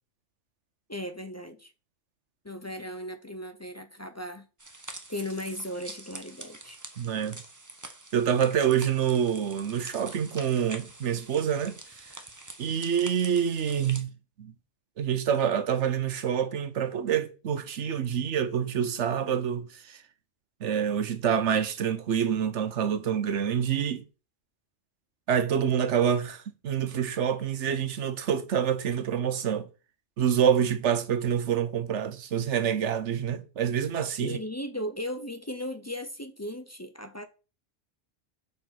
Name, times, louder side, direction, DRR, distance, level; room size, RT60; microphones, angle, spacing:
voice 1, 0.9-1.7 2.4-4.5 5.1-6.8 34.2-37.2, left 1 dB, 20° left, 0.5 m, -36 dB
sound 1, 4.6-14.0, right 2 dB, 20° right, 0.8 m, -45 dB
voice 2, 7.0-7.4 8.1-12.1 12.6-14.1 14.4-14.5 15.0-20.0 20.6-24.0 25.3-29.7 30.2-34.4, right 8 dB, 70° right, 1.1 m, -27 dB
7.0 x 4.5 x 5.9 m
omnidirectional pair, 1.3 m